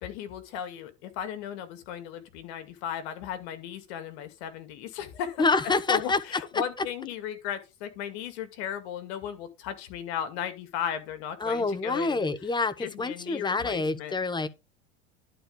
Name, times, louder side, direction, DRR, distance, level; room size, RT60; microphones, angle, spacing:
voice 1, 0.0-5.5 5.9-12.2 12.8-14.1, left 9 dB, 65° left, 2.2 m, -36 dB
voice 2, 5.4-6.2 11.4-14.5, left 3 dB, 10° left, 1.0 m, -27 dB
11.0 x 4.6 x 5.2 m
hypercardioid pair, 85°, 35 cm